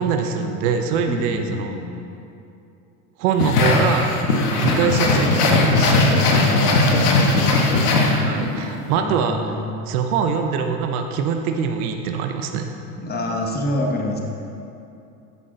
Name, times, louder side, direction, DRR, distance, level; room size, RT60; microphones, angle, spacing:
voice 1, 0.0-1.7 3.2-4.3 4.6-6.0 8.2-9.5 9.9-12.7, right 6 dB, 70° right, 5 dB, 0.9 m, -23 dB
voice 2, 1.1-1.9 6.4-7.9 8.9-9.7 13.0-14.2, left 2 dB, 20° left, 0 dB, 1.3 m, -27 dB
sound 1, 3.4-8.6, left 2 dB, 75° left, 1.5 m, -18 dB
12.5 x 6.1 x 3.9 m, 2.7 s
hypercardioid pair, 85°, 46 cm